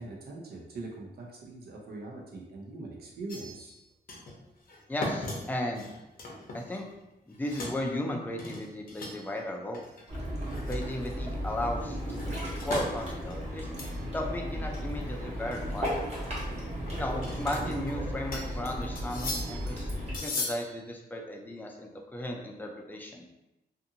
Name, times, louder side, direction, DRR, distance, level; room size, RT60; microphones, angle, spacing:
voice 1, 0.0-3.7, right 2 dB, 70° right, -1 dB, 0.7 m, -42 dB
sound 1, 3.3-3.8 4.1-4.4 4.7-7.0 7.3-7.8 8.4-9.4 9.7-10.0 10.4-11.3 12.2-12.9 13.3-14.0 14.3-14.4 14.8-14.9 15.5-15.9 16.9-17.9 18.3-18.6 19.0-19.7 20.1-20.7, left 2 dB, 60° left, 0.7 m, -38 dB
voice 2, 4.9-5.9 6.5-6.8 7.3-9.8 10.7-13.7 14.1-15.9 16.9-19.9 20.2-23.2, left 1 dB, 10° left, 0 dB, 0.4 m, -35 dB
Ocean, 10.1-20.2, equal, 40° right, 1.0 m, -35 dB
2.6 x 2.5 x 2.7 m, 0.94 s
wide cardioid pair, 130°, 17 cm